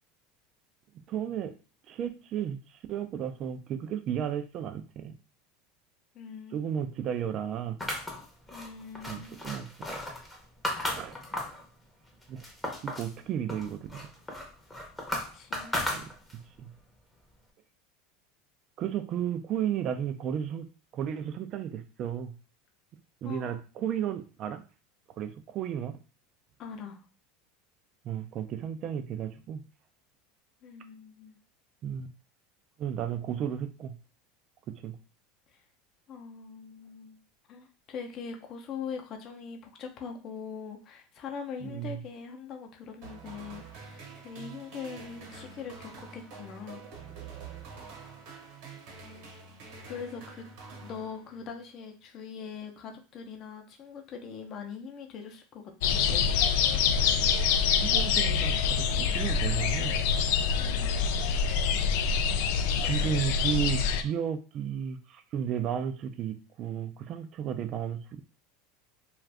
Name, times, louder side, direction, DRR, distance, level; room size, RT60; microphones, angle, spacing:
voice 1, 1.1-1.5 1.9-5.1 6.5-7.8 9.1-9.7 10.9-11.1 12.3-12.4 12.8-14.1 15.8-16.1 16.6-16.7 18.8-20.7 20.9-22.3 23.2-24.6 25.2-26.0 28.0-29.6 31.8-32.1 32.8-33.9 34.7-35.0 41.6-42.0 57.8-60.0 62.8-68.2, right 9 dB, 45° right, 8 dB, 0.4 m, -33 dB
voice 2, 6.1-6.6 8.5-9.4 15.3-15.8 23.2-23.6 26.6-27.0 30.6-31.4 36.1-37.2 37.5-46.8 49.9-50.4 50.8-56.3 60.6-61.0, left 6 dB, 45° left, 3 dB, 0.7 m, -42 dB
sound 1, 7.8-11.6 12.1-13.1 13.5-16.5, left 1 dB, 10° left, 0.8 m, -35 dB
sound 2, 43.0-51.6, right 5 dB, 65° right, 1.1 m, -46 dB
sound 3, 55.8-64.0, left 6 dB, 70° left, 0.3 m, -26 dB
2.5 x 2.4 x 3.3 m, 0.35 s
supercardioid pair, 120°, 0 cm